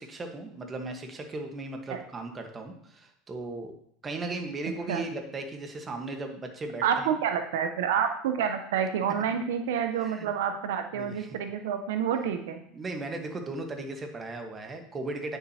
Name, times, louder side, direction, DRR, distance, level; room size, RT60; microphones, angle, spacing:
voice 1, 0.0-3.7 4.0-7.1 10.0-10.3 10.9-11.4 12.7-15.4, right 2 dB, 25° right, 4 dB, 1.2 m, -37 dB
voice 2, 6.8-12.6, right 8 dB, 85° right, 7 dB, 0.7 m, -28 dB
9.0 x 7.1 x 2.8 m, 0.67 s
supercardioid pair, 115°, 0 cm